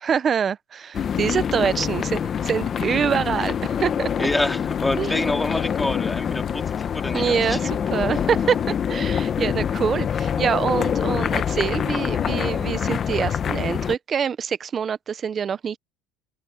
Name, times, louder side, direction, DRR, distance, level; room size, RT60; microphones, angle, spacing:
voice 1, 0.0-4.3 5.0-5.3 7.1-15.8, right 7 dB, 30° right, 0.6 m, -25 dB
sound 1, 0.9-14.0, left 8 dB, 30° left, 0.9 m, -25 dB
voice 2, 4.2-7.7, left 2 dB, 5° left, 2.6 m, -27 dB
open air
cardioid pair, 145°, 0 cm